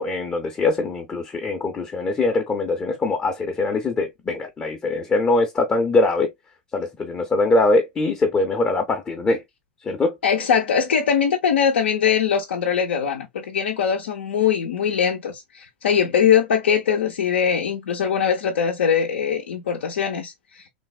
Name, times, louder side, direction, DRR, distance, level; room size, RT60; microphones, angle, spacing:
voice 1, 0.0-6.3 6.7-9.4 9.8-10.2, left 2 dB, 20° left, 0.5 m, -22 dB
voice 2, 10.2-20.6, left 7 dB, 80° left, 0.5 m, -21 dB
3.3 x 2.0 x 2.2 m
hypercardioid pair, 100°, 6 cm